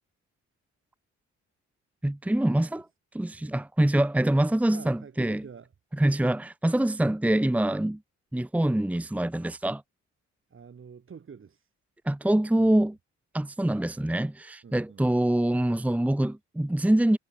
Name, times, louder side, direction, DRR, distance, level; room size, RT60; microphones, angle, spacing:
voice 1, 2.0-2.9 3.1-5.4 5.9-8.0 8.3-9.8 12.0-12.9 13.3-17.2, right 1 dB, 5° right, 1.1 m, -25 dB
voice 2, 4.7-5.7 10.5-11.7 12.6-12.9 14.6-15.1, right 6 dB, 45° right, 7.3 m, -47 dB
cardioid pair, 90°, 30 cm